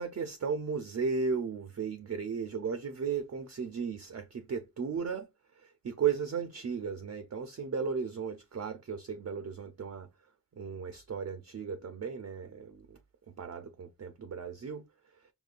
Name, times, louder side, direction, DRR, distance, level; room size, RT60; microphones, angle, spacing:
voice 1, 0.0-5.3 5.6-10.1 10.5-13.0 13.3-14.8, right 6 dB, 40° right, 0.4 m, -35 dB
5.2 x 2.2 x 2.4 m
cardioid pair, 40°, 42 cm